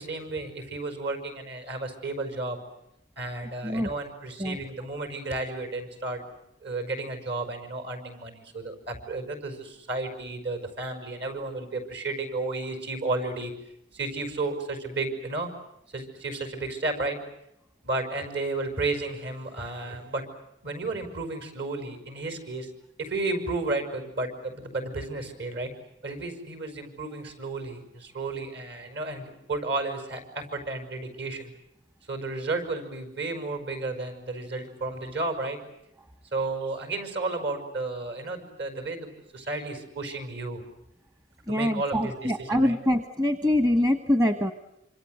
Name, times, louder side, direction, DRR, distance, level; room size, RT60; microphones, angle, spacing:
voice 1, 0.0-2.6 3.2-6.2 6.6-13.5 13.9-15.5 15.9-17.2 17.8-20.2 20.6-22.7 23.0-25.7 26.0-31.5 32.1-35.6 36.3-40.6 41.5-42.8, right 2 dB, 60° right, 7 dB, 5.9 m, -32 dB
voice 2, 41.5-44.5, left 1 dB, 20° right, 8 dB, 1.2 m, -24 dB
27.0 x 26.5 x 8.0 m, 0.83 s
head